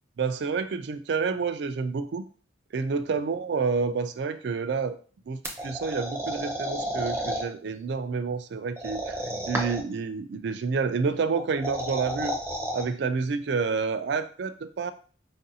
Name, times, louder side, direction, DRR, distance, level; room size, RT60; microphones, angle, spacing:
voice 1, 0.2-2.2 2.7-5.0 5.3-9.2 9.5-12.3 12.7-14.9, right 5 dB, 65° right, 11 dB, 0.3 m, -29 dB
sound 1, 5.4-7.4 8.8-9.9 11.4-12.8, equal, 10° right, 0.5 m, -31 dB
4.7 x 2.5 x 2.7 m, 0.40 s
head